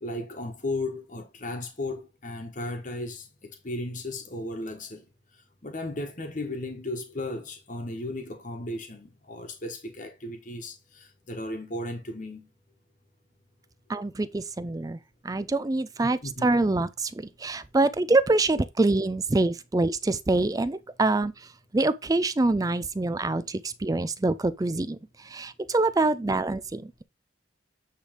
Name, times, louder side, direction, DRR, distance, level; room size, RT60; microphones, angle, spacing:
voice 1, 0.0-5.1 5.6-12.5 16.2-16.6, left 2 dB, 40° left, 1.3 m, -35 dB
voice 2, 13.9-15.0 15.2-17.1 17.4-21.3 21.7-25.0 25.3-27.0, right 2 dB, 20° right, 0.4 m, -25 dB
8.8 x 3.4 x 5.1 m
head